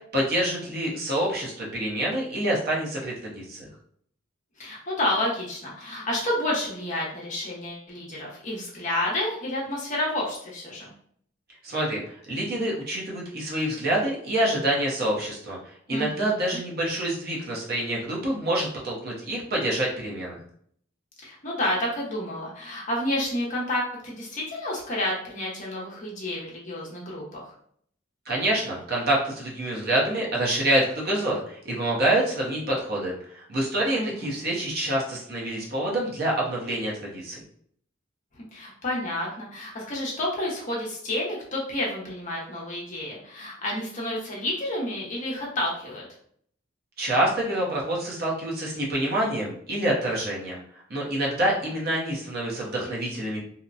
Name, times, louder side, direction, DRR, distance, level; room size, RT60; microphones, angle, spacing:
voice 1, 0.1-3.7 11.6-12.0 12.3-15.6 15.9-20.4 28.3-37.4 47.0-50.6 50.9-53.4, right 1 dB, 50° right, -3 dB, 0.8 m, -26 dB
voice 2, 4.6-10.9 15.9-16.6 21.2-27.5 33.9-34.4 38.3-46.0 51.5-51.6, left 1 dB, 40° left, -3 dB, 0.8 m, -30 dB
2.8 x 2.1 x 2.5 m, 0.62 s
head